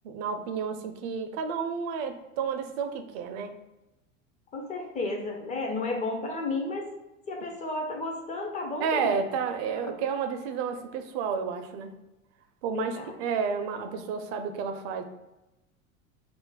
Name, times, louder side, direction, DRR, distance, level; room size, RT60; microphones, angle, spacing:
voice 1, 0.0-3.6 8.8-11.9 12.6-15.0, right 6 dB, 50° right, 7 dB, 0.5 m, -31 dB
voice 2, 4.5-6.9 7.3-9.3 9.8-9.9 12.7-13.1, left 2 dB, 20° left, 2 dB, 0.4 m, -32 dB
2.5 x 2.1 x 3.7 m, 0.98 s
hypercardioid pair, 85°, 41 cm